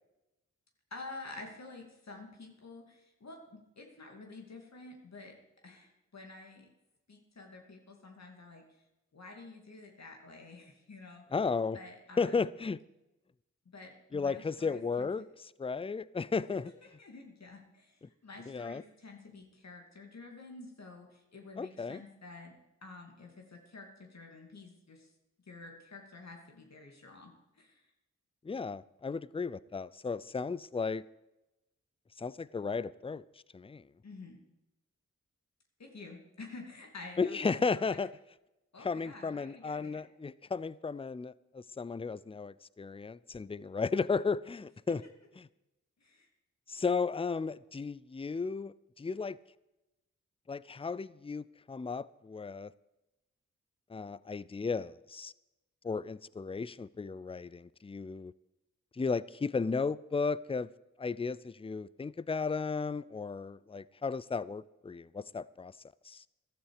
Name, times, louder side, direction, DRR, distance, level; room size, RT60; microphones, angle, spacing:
voice 1, 0.9-5.4 5.6-6.7 7.1-8.8 9.1-11.2 11.7-12.5 13.6-15.1 16.5-25.1 25.5-27.9 34.0-34.4 35.8-38.0 38.7-40.0 44.9-45.0 46.0-46.3, left 3 dB, 60° left, 2.6 m, -50 dB
voice 2, 11.3-11.8 12.2-12.8 14.1-15.3 15.6-16.7 18.5-18.8 21.6-22.0 28.4-31.0 32.2-33.2 33.5-33.8 37.2-38.1 38.8-45.0 46.7-49.4 50.5-52.7 53.9-55.3 55.8-58.3 59.0-60.7 61.0-65.8 66.0-66.2, left 4 dB, 20° left, 0.5 m, -34 dB
14.0 x 12.5 x 4.9 m
cardioid pair, 45°, 30 cm